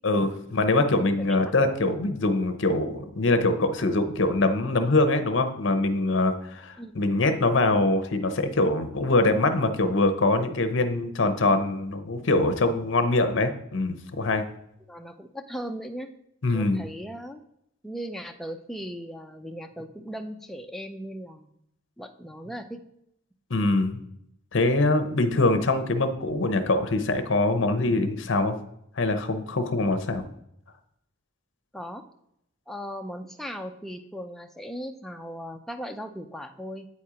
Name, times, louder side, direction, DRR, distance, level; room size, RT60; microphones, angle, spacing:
voice 1, 0.0-14.4 16.4-16.9 23.5-24.0 24.5-28.6 29.0-30.2, left 2 dB, 60° left, 8 dB, 0.7 m, -23 dB
voice 2, 1.1-1.5 6.8-7.0 14.9-16.1 16.5-17.4 17.8-21.5 22.0-22.8 31.7-32.1 32.7-36.9, equal, ahead, 5 dB, 0.4 m, -38 dB
8.3 x 4.3 x 4.9 m, 0.76 s
head